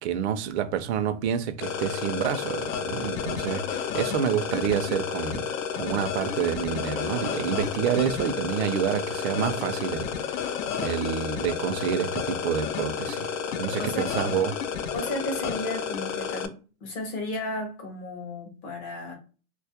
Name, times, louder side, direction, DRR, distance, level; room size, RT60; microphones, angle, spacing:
voice 1, 0.0-5.5 5.8-10.5 10.8-13.3 13.6-14.5, right 8 dB, 55° right, 0.5 m, -28 dB
sound 1, 1.6-16.5, left 7 dB, 70° left, 0.5 m, -31 dB
voice 2, 13.8-14.1 14.9-16.5 16.8-19.1, left 2 dB, 20° left, 0.4 m, -33 dB
2.2 x 2.1 x 2.7 m
supercardioid pair, 155°, 40 cm